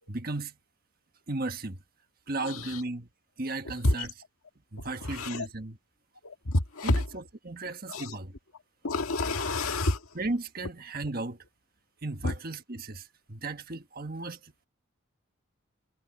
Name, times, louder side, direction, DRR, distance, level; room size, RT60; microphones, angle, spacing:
voice 1, 0.1-0.6 1.3-1.8 2.3-3.1 3.4-4.1 4.7-5.8 6.8-8.3 10.1-11.4 12.0-14.5, right 2 dB, 45° right, 1.5 m, -35 dB
voice 2, 2.4-2.8 3.8-4.1 4.8-5.5 6.2-7.1 7.9-8.2 8.8-10.2 12.2-12.3, left 2 dB, 90° left, 1.8 m, -29 dB
head